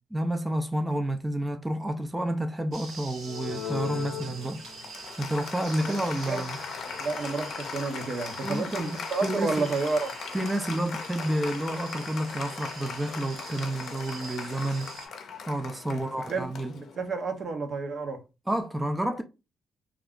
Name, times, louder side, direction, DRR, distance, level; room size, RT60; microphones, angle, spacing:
voice 1, 0.1-4.6 5.2-6.6 8.4-9.0 9.2-9.7 10.3-14.9 15.5-16.7 18.5-19.2, right 1 dB, 10° right, 0.4 m, -30 dB
sound 1, 2.7-15.1, right 4 dB, 65° right, 1.1 m, -45 dB
Applause, 3.2-17.3, left 6 dB, 65° left, 0.5 m, -39 dB
voice 2, 7.0-10.1 15.9-16.0 16.3-16.5 16.7-18.2, right 3 dB, 50° right, 0.7 m, -30 dB
2.3 x 2.3 x 3.6 m
cardioid pair, 90°, 0 cm